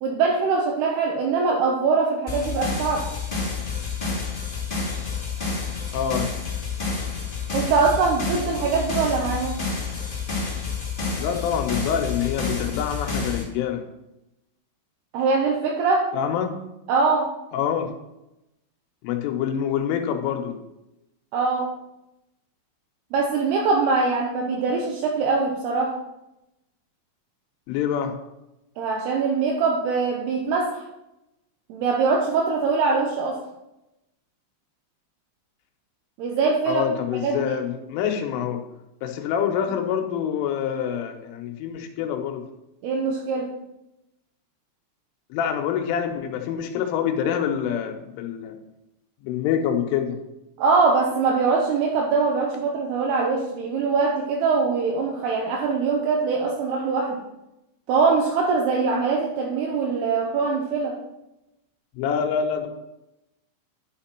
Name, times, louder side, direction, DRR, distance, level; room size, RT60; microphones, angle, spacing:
voice 1, 0.0-3.1 7.5-9.6 15.1-16.1 16.9-17.3 21.3-21.7 23.1-26.0 28.8-30.8 31.7-33.4 36.2-36.8 37.2-37.4 42.8-43.5 50.6-57.2 57.9-61.0, right 4 dB, 80° right, 0 dB, 2.4 m, -22 dB
sound 1, 2.3-13.4, left 4 dB, 40° left, 0.7 m, -29 dB
voice 2, 5.9-6.3 11.2-13.8 16.1-16.6 17.5-17.9 19.0-20.5 27.7-28.2 36.7-38.6 39.0-42.4 45.3-48.6 49.2-50.2 61.9-62.7, left 8 dB, 80° left, 4 dB, 3.4 m, -26 dB
11.0 x 5.8 x 4.4 m, 0.92 s
omnidirectional pair, 5.7 m